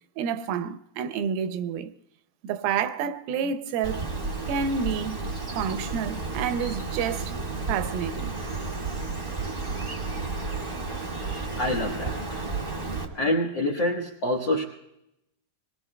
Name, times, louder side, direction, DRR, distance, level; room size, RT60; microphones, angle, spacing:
voice 1, 0.2-1.9 2.4-4.1 4.5-5.2 5.6-7.3 7.7-8.4 12.5-12.6 12.9-13.0, right 7 dB, 90° right, 2.5 m, -29 dB
Bird, 3.8-13.1, right 3 dB, 35° right, 0.8 m, -32 dB
voice 2, 11.6-12.4 13.1-14.6, left 1 dB, 85° left, 1.0 m, -26 dB
26.5 x 21.5 x 2.2 m
omnidirectional pair, 4.1 m